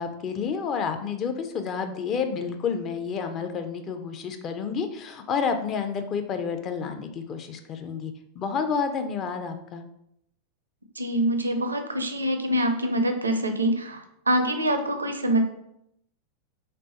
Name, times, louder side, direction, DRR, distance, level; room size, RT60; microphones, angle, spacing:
voice 1, 0.0-9.8, left 6 dB, 30° left, 7 dB, 0.5 m, -30 dB
voice 2, 11.0-15.4, right 1 dB, 80° right, 7 dB, 0.5 m, -25 dB
3.4 x 3.3 x 3.9 m, 0.76 s
figure-of-eight pair, 90°, 0 cm